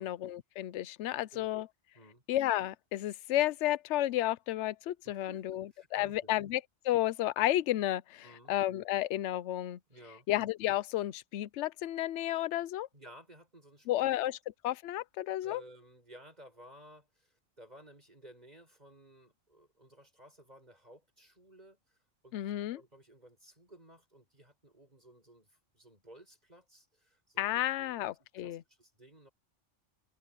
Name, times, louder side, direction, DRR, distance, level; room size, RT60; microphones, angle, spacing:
voice 1, 0.0-1.7 2.3-5.6 5.9-9.8 10.3-12.9 13.9-14.4 14.6-15.6 22.3-22.8 27.4-28.6, left 14 dB, 70° left, 0.9 m, -32 dB
voice 2, 5.0-6.4 8.2-8.5 9.9-10.3 12.9-14.1 15.4-22.0 22.2-28.1 28.4-29.3, right 1 dB, 35° right, 7.8 m, -56 dB
omnidirectional pair, 1.3 m